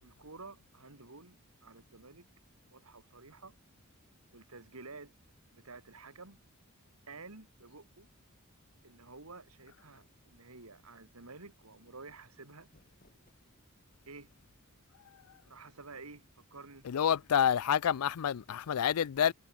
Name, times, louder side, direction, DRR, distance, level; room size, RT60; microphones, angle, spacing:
voice 1, 0.0-2.3 2.7-3.6 4.3-5.1 5.5-6.4 7.1-8.1 8.8-12.7 14.1-14.3 15.4-16.9, right 3 dB, 75° right, 2.9 m, -51 dB
sound 1, 12.3-13.9, left 1 dB, 40° left, 2.7 m, -69 dB
voice 2, 16.8-19.3, left 8 dB, 85° left, 0.4 m, -28 dB
head